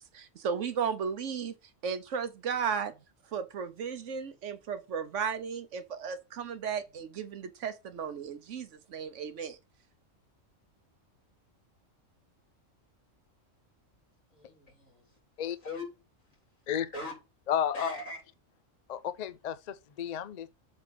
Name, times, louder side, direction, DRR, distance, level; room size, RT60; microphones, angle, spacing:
voice 1, 0.0-1.5 1.8-3.0 3.3-9.6, right 6 dB, 70° right, 1.2 m, -35 dB
voice 2, 14.3-15.2 15.6-15.9 16.2-16.4 16.7-17.2 17.7-18.2, left 2 dB, 85° left, 3.6 m, -41 dB
voice 3, 17.5-17.9 18.9-20.5, left 9 dB, 55° left, 0.4 m, -32 dB
7.7 x 3.6 x 5.1 m
omnidirectional pair, 1.3 m